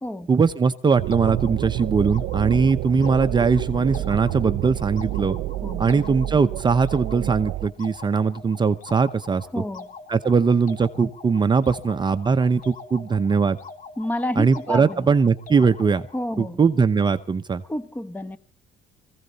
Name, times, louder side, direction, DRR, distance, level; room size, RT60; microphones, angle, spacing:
voice 1, 0.3-5.4 5.8-9.5 10.1-13.6 14.4-16.1 16.4-17.6, right 5 dB, 25° right, 0.8 m, -20 dB
sound 1, 1.0-7.7, right 16 dB, 85° right, 0.7 m, -29 dB
sound 2, 1.1-16.5, left 4 dB, 50° left, 2.2 m, -43 dB
voice 2, 9.5-9.9 14.0-15.1 16.1-16.6 17.6-18.4, left 1 dB, 10° left, 1.1 m, -29 dB
22.5 x 16.0 x 4.1 m
cardioid pair, 110°, 17 cm